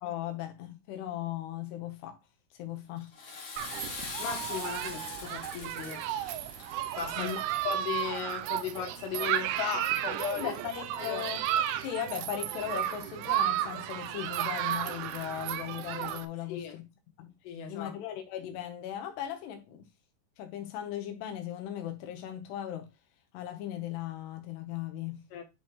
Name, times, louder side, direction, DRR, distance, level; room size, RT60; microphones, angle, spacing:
voice 1, 0.0-2.2 2.6-3.1 7.2-7.4 10.4-11.4 11.8-16.9 17.2-17.3 17.7-19.9 20.4-22.9 23.3-25.3, left 11 dB, 70° left, 2.9 m, -38 dB
Water / Toilet flush, 3.0-8.2, left 4 dB, 55° left, 1.6 m, -43 dB
Human group actions, 3.6-16.3, right 12 dB, 80° right, 2.8 m, -33 dB
voice 2, 4.2-6.1 7.0-7.4 7.7-10.5 11.0-11.2 16.5-16.7 17.5-17.9 25.3-25.4, left 9 dB, 85° left, 4.0 m, -36 dB
10.5 x 4.0 x 3.1 m
omnidirectional pair, 5.7 m